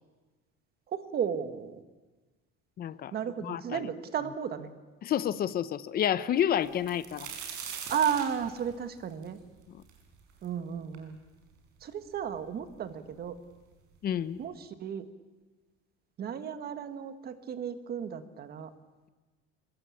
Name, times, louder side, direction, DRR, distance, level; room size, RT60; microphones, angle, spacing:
voice 1, 0.9-1.8 3.1-4.7 7.9-9.4 10.4-11.2 11.8-13.4 14.4-14.5 14.8-15.1 16.2-18.7, right 8 dB, 30° right, 10 dB, 1.5 m, -33 dB
voice 2, 2.8-3.2 3.4-3.9 5.0-7.3 9.7-9.8 14.0-14.4, left 10 dB, 30° left, 15 dB, 0.9 m, -30 dB
sound 1, 6.6-10.5 10.9-11.0 11.8-11.9 12.2-12.8 13.7-13.8 14.2-14.4, right 7 dB, 50° right, 5.7 m, -42 dB
25.0 x 22.5 x 8.7 m, 1.3 s
cardioid pair, 180°, 30 cm